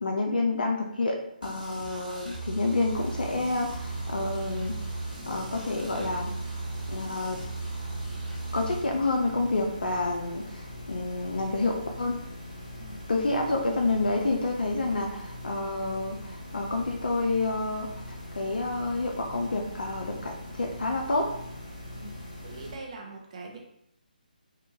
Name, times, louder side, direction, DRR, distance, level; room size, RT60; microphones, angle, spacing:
voice 1, 0.0-4.7 5.3-6.3 6.9-7.4 8.5-12.2 13.1-21.3, left 2 dB, 65° left, 1 dB, 0.4 m, -29 dB
sound 1, 1.4-8.8, right 3 dB, 65° right, 1.2 m, -37 dB
sound 2, 2.9-22.7, left 1 dB, 20° left, 0.8 m, -42 dB
voice 2, 22.4-23.6, right 3 dB, 40° right, 0 dB, 0.5 m, -42 dB
2.8 x 2.2 x 2.7 m, 0.75 s
figure-of-eight pair, 145°, 5 cm